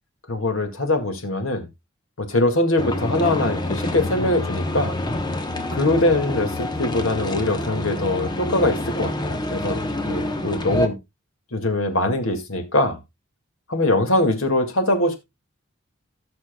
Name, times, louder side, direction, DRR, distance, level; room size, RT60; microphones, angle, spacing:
voice 1, 0.3-1.7 2.2-5.0 5.7-11.0 11.5-13.0 13.7-15.2, left 2 dB, 75° left, 2.0 m, -22 dB
sound 1, 2.8-10.9, left 1 dB, 20° left, 0.9 m, -27 dB
17.5 x 6.2 x 2.2 m
head